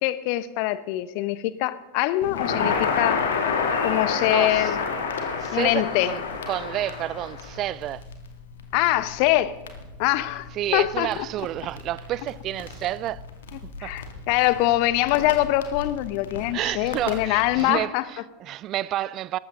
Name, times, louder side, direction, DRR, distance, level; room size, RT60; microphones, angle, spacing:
voice 1, 0.0-3.2 3.8-4.8 5.5-6.1 8.7-9.5 10.0-11.1 13.8-18.0, left 16 dB, 50° left, 1.0 m, -23 dB
Crackle, 2.2-17.7, left 5 dB, 65° left, 2.3 m, -31 dB
voice 2, 4.3-4.8 5.4-8.1 10.5-13.2 13.8-14.0 16.5-19.4, right 13 dB, 40° right, 0.4 m, -30 dB
19.0 x 15.0 x 3.9 m
figure-of-eight pair, 85°, 0 cm